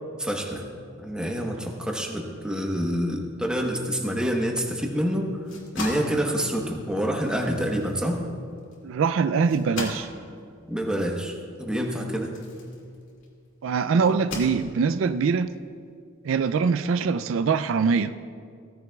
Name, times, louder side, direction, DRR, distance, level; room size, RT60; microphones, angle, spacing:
voice 1, 0.2-0.7 1.0-5.4 5.7-8.2 10.7-12.3, equal, 5° right, 1 dB, 1.0 m, -27 dB
sound 1, 5.3-13.4 14.0-15.1, left 2 dB, 75° left, 2.4 m, -39 dB
voice 2, 8.8-10.1 13.6-15.5 16.2-18.1, right 5 dB, 75° right, 11 dB, 0.4 m, -23 dB
17.0 x 14.5 x 2.3 m, 2.3 s
head